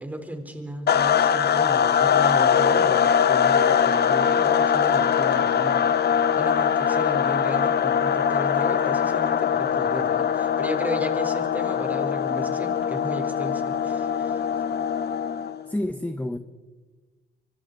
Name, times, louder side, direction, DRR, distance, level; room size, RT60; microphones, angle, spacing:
voice 1, 0.0-5.9 6.3-14.4, right 1 dB, 10° right, 4 dB, 4.1 m, -35 dB
sound 1, 0.9-15.6, left 8 dB, 55° left, 1.0 m, -22 dB
voice 2, 15.7-16.4, left 1 dB, 5° left, 8 dB, 1.2 m, -28 dB
25.5 x 25.0 x 4.1 m, 1.3 s
cardioid pair, 90°, 20 cm